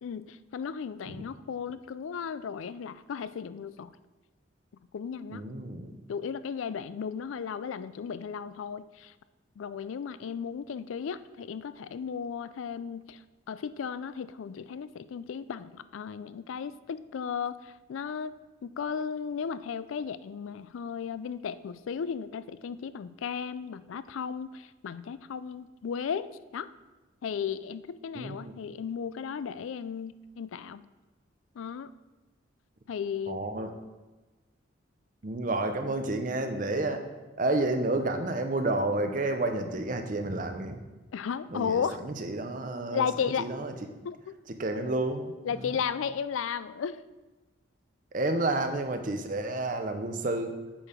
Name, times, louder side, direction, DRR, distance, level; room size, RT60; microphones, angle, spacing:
voice 1, 0.0-3.9 4.9-5.4 6.1-9.1 9.6-13.2 13.5-18.3 18.6-26.7 27.2-30.9 31.6-31.9 32.9-33.4 41.1-42.0 42.9-43.5 44.0-44.4 45.4-47.0, left 7 dB, 85° left, 14 dB, 0.4 m, -35 dB
voice 2, 5.3-5.9 28.1-28.5 33.3-33.7 35.2-37.1 37.4-40.8 41.5-43.7 44.6-45.8 48.1-50.6, right 2 dB, 45° right, 6 dB, 0.7 m, -30 dB
8.7 x 4.6 x 5.0 m, 1.2 s
head